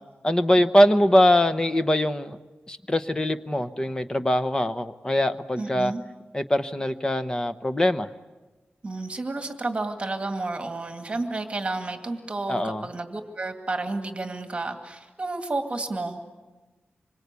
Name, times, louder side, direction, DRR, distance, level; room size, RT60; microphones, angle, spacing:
voice 1, 0.2-2.4 2.7-5.9 6.3-8.1 12.5-12.8, left 1 dB, 20° left, 11 dB, 0.9 m, -22 dB
voice 2, 5.5-6.0 8.8-16.2, right 2 dB, 30° right, 5 dB, 2.2 m, -31 dB
26.5 x 24.0 x 8.3 m, 1.2 s
wide cardioid pair, 120°, 4 cm